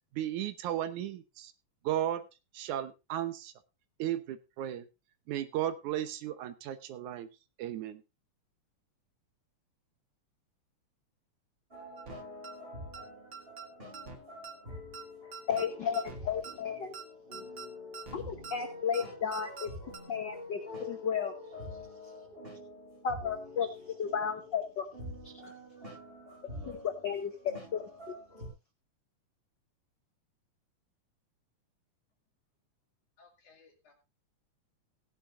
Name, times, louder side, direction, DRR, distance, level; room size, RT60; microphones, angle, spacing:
voice 1, 0.1-1.5 1.8-2.2 2.5-3.5 4.0-4.9 5.3-7.3 7.6-8.0, right 12 dB, 80° right, 11 dB, 2.4 m, -35 dB
sound 1, 11.7-28.5, left 1 dB, 15° right, 6.9 m, -46 dB
sound 2, 12.0-12.2 12.4-12.5 12.9-13.0 13.3-13.7 13.9-14.2 14.4-14.5 14.9-15.0 15.3-15.7 15.9-16.2 16.4-16.5 16.9-17.0 17.3-17.7 17.9-18.2 18.4-18.5 18.9-19.0 19.3-19.7 19.9-20.0, right 6 dB, 45° right, 2.2 m, -44 dB
voice 2, 15.5-17.0 18.1-19.7 20.1-21.3 23.0-23.7 24.0-24.9 25.2-25.3 26.7-27.9, left 7 dB, 85° left, 7 dB, 0.9 m, -33 dB
voice 3, 33.2-33.9, left 4 dB, 55° left, 2 dB, 3.7 m, -61 dB
17.0 x 10.0 x 2.6 m, 0.26 s
omnidirectional pair, 3.4 m